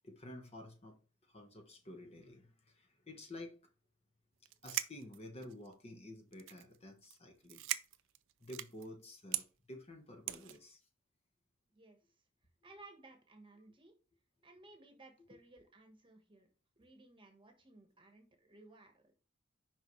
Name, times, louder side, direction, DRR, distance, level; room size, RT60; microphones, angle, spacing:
voice 1, 0.0-3.6 4.6-7.7 8.4-10.8 12.6-12.7 15.3-15.4, left 1 dB, 30° left, 1.1 m, -51 dB
sound 1, 4.5-5.7 6.3-6.8 7.0-7.2 7.4-8.9 9.3-9.5 10.3-10.6, right 14 dB, 75° right, 0.4 m, -39 dB
voice 2, 11.7-12.0 12.6-14.0 14.4-16.5 16.8-19.1, right 2 dB, 25° right, 1.2 m, -59 dB
5.9 x 5.3 x 3.1 m
head